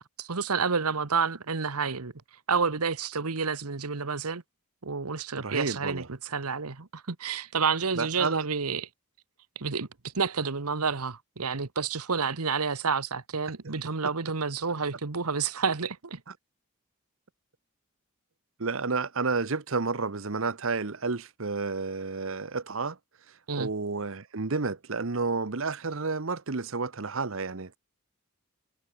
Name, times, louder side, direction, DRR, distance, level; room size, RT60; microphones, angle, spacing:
voice 1, 0.2-2.1 2.5-4.4 4.8-8.9 9.5-9.9 10.1-16.2 23.5-23.7, right 5 dB, 90° right, 1.3 m, -29 dB
voice 2, 5.4-6.1 7.9-8.4 18.6-23.0 23.6-27.8, right 4 dB, 65° right, 1.0 m, -30 dB
head